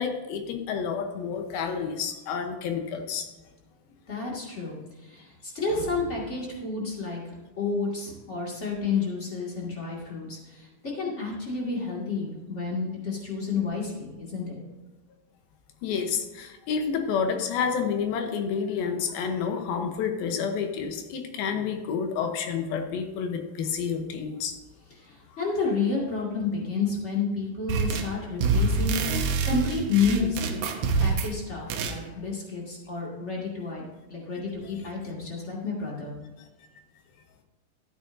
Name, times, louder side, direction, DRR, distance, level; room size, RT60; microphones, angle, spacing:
voice 1, 0.0-3.3 15.8-24.5, left 6 dB, 85° left, 5 dB, 2.8 m, -29 dB
voice 2, 4.1-4.8 5.1-7.2 7.6-14.6 25.4-29.0 29.4-30.6 31.0-33.8 34.1-36.1, left 4 dB, 25° left, -3 dB, 1.7 m, -30 dB
sound 1, 27.7-28.1 28.4-31.4 31.7-32.0, right 4 dB, 80° right, 1.6 m, -26 dB
13.0 x 9.0 x 2.6 m, 1.2 s
omnidirectional pair, 4.2 m